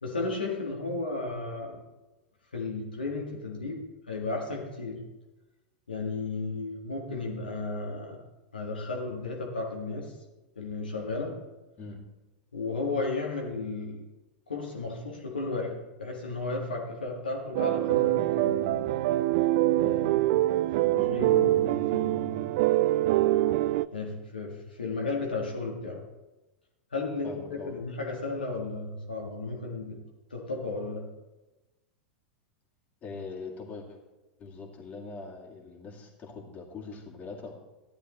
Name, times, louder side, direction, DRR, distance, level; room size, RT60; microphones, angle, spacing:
voice 1, 0.0-1.8 2.5-5.1 5.9-8.2 8.5-10.2 10.6-11.4 12.5-14.0 14.5-19.0 19.8-20.6 20.9-22.7 23.2-23.3 23.9-26.0 26.9-30.0 30.3-31.1, left 3 dB, 80° left, -1 dB, 1.9 m, -34 dB
sound 1, 17.5-23.9, right 15 dB, 50° right, 0.3 m, -24 dB
voice 2, 27.2-27.7 33.0-34.0 34.4-37.5, left 4 dB, 30° left, -1 dB, 2.6 m, -42 dB
14.5 x 11.0 x 3.1 m, 1.1 s
figure-of-eight pair, 90°, 5 cm